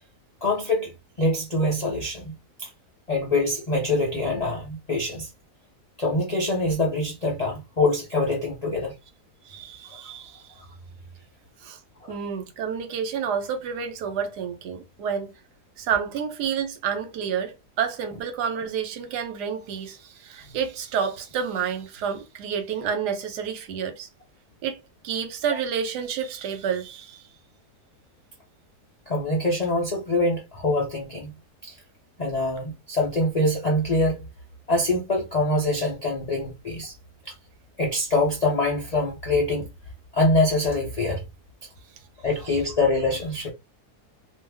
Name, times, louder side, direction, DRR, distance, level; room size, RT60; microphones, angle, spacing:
voice 1, 0.4-0.9 1.2-2.7 3.1-5.3 6.0-8.9 12.0-12.1 29.1-31.3 31.6-31.7 32.2-34.3 34.7-36.9 37.2-37.3 37.8-39.7 40.1-41.2 42.2-43.5, left 2 dB, 65° left, 0.3 m, -24 dB
voice 2, 9.5-10.4 11.6-11.8 12.1-15.3 15.8-24.1 24.6-24.8 25.0-27.2, right 7 dB, 85° right, 1.3 m, -29 dB
2.5 x 2.4 x 3.3 m
omnidirectional pair, 1.7 m